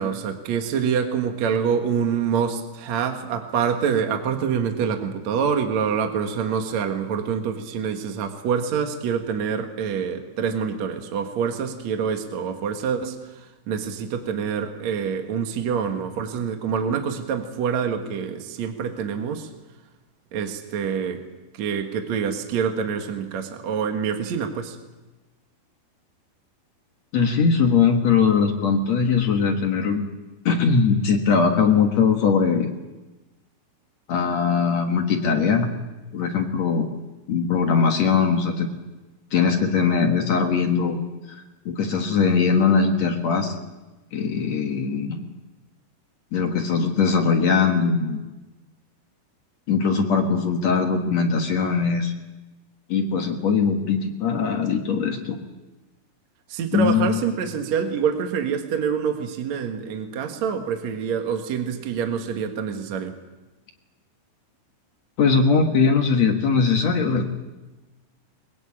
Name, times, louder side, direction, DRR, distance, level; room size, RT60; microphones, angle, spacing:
voice 1, 0.0-19.5 20.3-21.2 21.5-24.8 56.5-63.2, right 7 dB, 55° right, 5 dB, 2.2 m, -26 dB
voice 2, 27.1-30.1 30.5-32.7 34.1-35.7 36.1-36.9 37.3-38.7 39.3-41.0 41.3-43.5 44.1-45.2 46.3-48.2 49.7-52.1 52.9-55.4 56.7-57.2 65.2-67.3, left 5 dB, 55° left, 3 dB, 2.1 m, -21 dB
22.5 x 21.5 x 8.7 m, 1.1 s
omnidirectional pair, 4.9 m